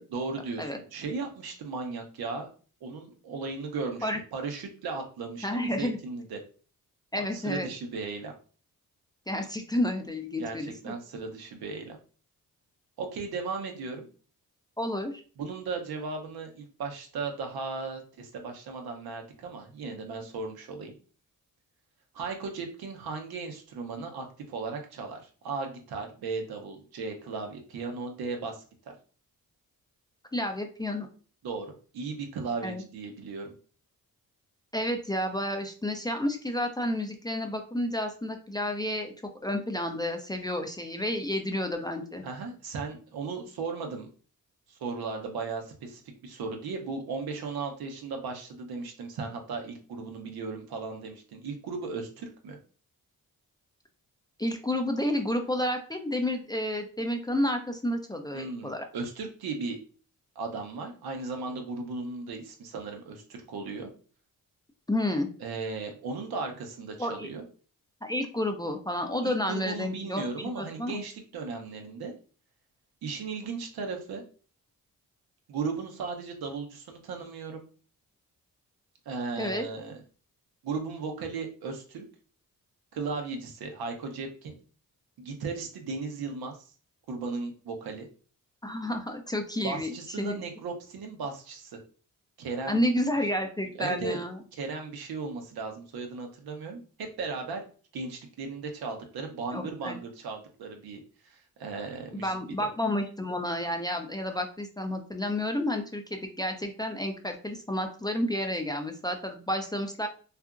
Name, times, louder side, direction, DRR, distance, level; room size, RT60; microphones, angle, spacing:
voice 1, 0.1-2.5 2.8-6.4 7.1-8.3 10.4-12.0 13.0-14.1 15.4-20.9 22.1-28.6 31.4-33.5 42.2-44.1 44.7-52.6 58.3-59.8 60.4-63.9 65.4-67.4 69.2-72.1 73.0-74.2 75.5-77.6 79.1-80.0 80.6-82.0 82.9-84.6 85.2-86.6 87.1-88.1 89.6-91.8 92.4-92.8 93.8-94.2 94.5-97.6 97.9-102.3, right 4 dB, 80° right, 3 dB, 0.7 m, -36 dB
voice 2, 5.4-6.0 7.1-7.7 9.3-10.9 14.8-15.2 30.3-31.1 32.6-32.8 34.7-39.1 39.4-42.2 54.4-58.9 64.9-65.3 67.0-67.3 68.0-70.2 70.6-71.0 79.4-79.7 88.6-90.4 92.7-94.4 99.5-100.0 102.1-110.1, left 1 dB, 10° left, 4 dB, 0.3 m, -30 dB
2.8 x 2.4 x 2.3 m, 0.39 s
cardioid pair, 75°, 36 cm